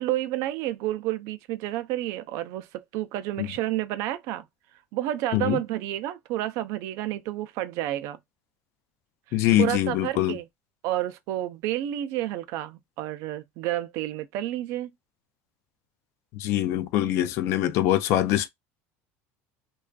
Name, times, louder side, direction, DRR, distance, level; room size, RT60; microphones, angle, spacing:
voice 1, 0.0-4.4 4.9-8.2 9.3-10.4 10.8-14.9, right 14 dB, 60° right, 0.4 m, -30 dB
voice 2, 9.3-10.3 16.3-18.5, left 13 dB, 50° left, 0.4 m, -23 dB
2.4 x 2.3 x 2.2 m
cardioid pair, 160°, 6 cm